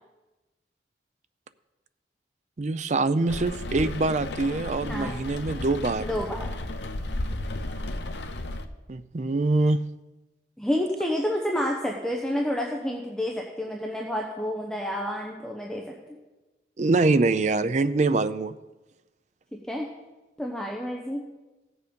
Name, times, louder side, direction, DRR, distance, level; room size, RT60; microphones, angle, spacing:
voice 1, 2.6-6.1 8.9-9.8 16.8-18.5, right 3 dB, 40° right, 13 dB, 0.4 m, -24 dB
Rain, 3.3-8.7, left 1 dB, 75° left, 0.8 m, -33 dB
voice 2, 6.0-6.5 10.6-16.2 19.7-19.9 20.4-21.2, equal, 5° left, -1 dB, 0.9 m, -29 dB
16.0 x 7.0 x 5.3 m, 1.1 s
head